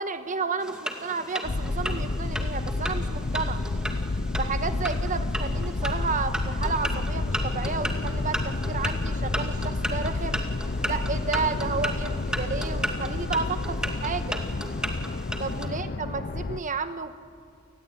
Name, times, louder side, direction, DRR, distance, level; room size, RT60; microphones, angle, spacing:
voice 1, 0.0-3.6 4.4-10.4 10.8-14.4 15.4-17.1, right 4 dB, 35° right, 10 dB, 1.3 m, -31 dB
sound 1, 0.6-15.7, right 1 dB, 5° right, 2.3 m, -35 dB
sound 2, 1.4-16.6, left 2 dB, 45° left, 0.7 m, -30 dB
29.0 x 20.0 x 9.3 m, 2.3 s
head